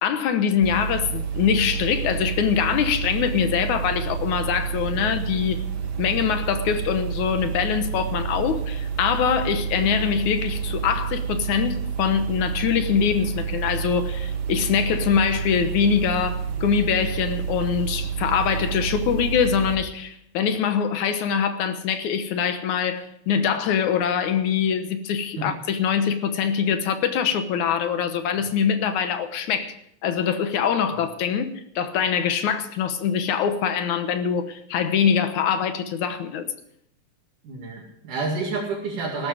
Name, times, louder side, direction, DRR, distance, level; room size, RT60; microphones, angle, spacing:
voice 1, 0.0-5.6 6.0-31.5 31.8-36.4, left 7 dB, 75° left, 2.5 m, -23 dB
sound 1, 0.6-19.8, right 7 dB, 55° right, 1.1 m, -29 dB
voice 2, 37.4-39.3, right 3 dB, 75° right, 3.9 m, -29 dB
16.0 x 13.0 x 5.0 m
omnidirectional pair, 3.6 m